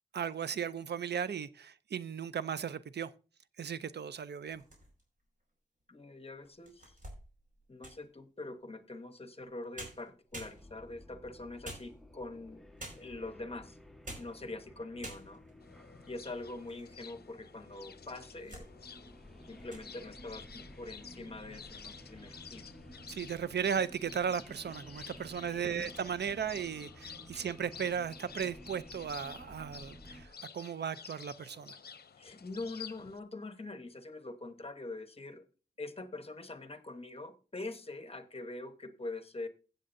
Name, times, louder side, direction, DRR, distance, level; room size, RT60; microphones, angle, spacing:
voice 1, 0.1-3.1 3.6-4.6 23.1-31.8, right 7 dB, 70° right, 0.5 m, -36 dB
Toy Gun, 4.5-5.2 5.8-5.9 6.4-8.1 9.4-9.5 9.8-11.0 11.6-12.3 12.8-13.3 13.9-14.4 14.7-14.8 15.0-15.6 16.1-16.9 17.2-17.3 18.0-18.7 19.1-19.3 19.6-19.9, right 1 dB, 45° right, 5.1 m, -48 dB
voice 2, 5.9-7.0 7.7-12.7 12.9-13.8 14.2-15.4 16.0-18.7 19.5-22.7 25.3-25.9 27.3-27.4 32.2-35.4 35.8-39.5, left 2 dB, 35° left, 1.1 m, -44 dB
sound 1, 10.4-30.3, equal, ahead, 1.1 m, -54 dB
sound 2, 15.6-33.2, left 7 dB, 60° left, 0.7 m, -52 dB
16.0 x 7.6 x 2.6 m
wide cardioid pair, 100°, 18 cm